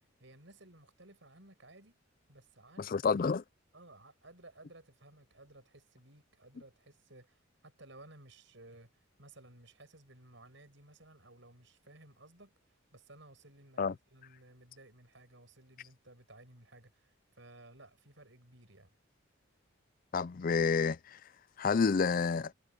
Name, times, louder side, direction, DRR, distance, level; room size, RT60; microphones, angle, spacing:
voice 1, 0.2-2.0 2.3-3.1 3.7-8.9 9.2-12.5 12.9-18.9, right 2 dB, 60° right, 7.7 m, -57 dB
voice 2, 2.8-3.4 13.8-13.9 20.1-21.2 21.6-22.5, left 5 dB, 40° left, 0.4 m, -29 dB
head